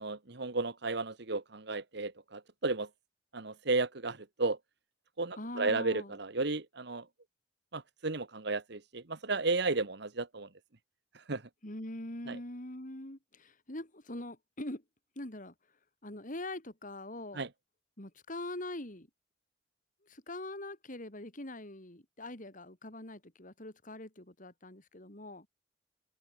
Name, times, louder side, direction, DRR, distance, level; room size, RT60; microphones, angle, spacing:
voice 1, 0.0-2.9 3.3-4.6 5.2-7.0 7.7-10.5 11.1-11.4 12.3-12.4 17.3-17.5, right 3 dB, 60° right, 1.5 m, -33 dB
voice 2, 5.4-6.2 11.6-14.8 15.2-15.5 16.0-17.4 18.0-19.1 20.0-25.5, left 1 dB, 45° left, 3.7 m, -43 dB
open air
head